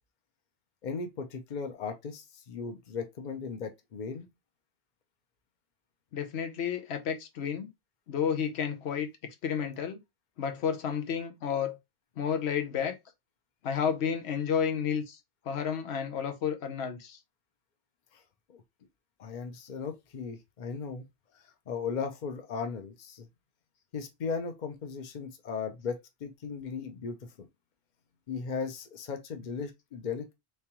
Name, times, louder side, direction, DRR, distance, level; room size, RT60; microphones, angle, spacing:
voice 1, 0.8-4.3 18.1-18.2 18.5-18.6 19.2-21.1 21.3-23.3 23.9-27.5 28.3-30.3, left 5 dB, 50° left, 0.8 m, -37 dB
voice 2, 6.1-7.7 8.1-9.1 9.4-10.0 10.4-11.8 12.2-13.0 13.6-15.2 15.5-17.2, left 7 dB, 85° left, 1.0 m, -31 dB
3.5 x 3.3 x 2.9 m
omnidirectional pair, 1.1 m